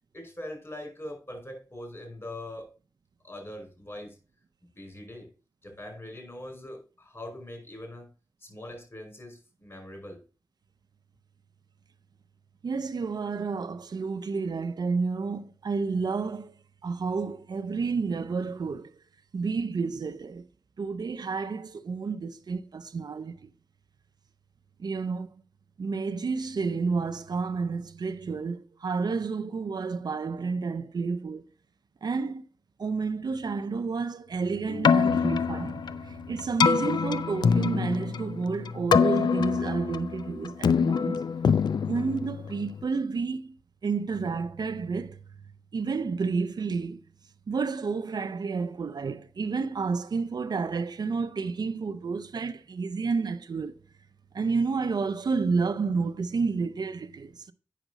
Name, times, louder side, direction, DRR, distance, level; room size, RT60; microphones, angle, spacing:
voice 1, 0.1-2.7 3.2-4.1 4.7-5.3 5.6-8.1 8.4-10.2, left 1 dB, 40° left, 5.1 m, -42 dB
voice 2, 12.6-16.5 16.8-18.9 19.3-20.5 20.8-23.5 24.8-25.4 25.8-31.4 32.0-32.4 32.8-41.2 41.9-43.5 43.8-47.0 47.5-53.8 54.3-57.5, right 4 dB, 70° right, 0.6 m, -30 dB
Keyboard (musical), 34.7-42.8, left 6 dB, 85° left, 0.4 m, -25 dB
9.1 x 5.9 x 4.0 m
cardioid pair, 50°, 7 cm